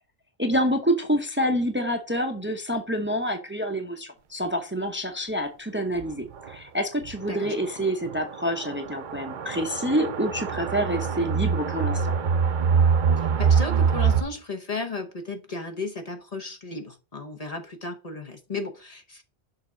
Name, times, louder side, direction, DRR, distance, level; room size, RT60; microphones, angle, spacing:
voice 1, 0.4-12.1, equal, 10° right, 0.8 m, -27 dB
sound 1, 6.0-6.1 6.5-6.6 7.1-7.2 8.1-14.2, right 6 dB, 55° right, 0.7 m, -24 dB
voice 2, 13.1-19.2, left 3 dB, 40° left, 0.8 m, -34 dB
6.6 x 3.6 x 5.1 m
omnidirectional pair, 1.1 m